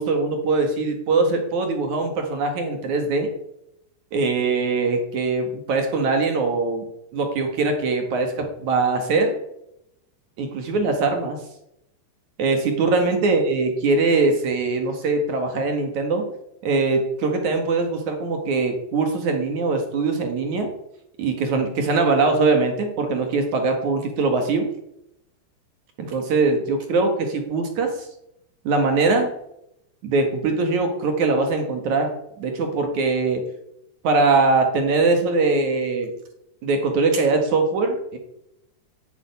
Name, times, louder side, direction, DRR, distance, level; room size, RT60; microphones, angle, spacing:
voice 1, 0.0-3.3 4.1-6.8 7.1-9.3 10.4-11.4 12.4-16.3 16.6-20.7 21.2-24.7 26.0-28.1 28.6-29.3 30.0-32.1 32.4-33.4 34.0-36.1 36.6-38.2, right 3 dB, 55° right, 5 dB, 2.5 m, -22 dB
11.5 x 8.2 x 9.4 m, 0.82 s
omnidirectional pair, 5.0 m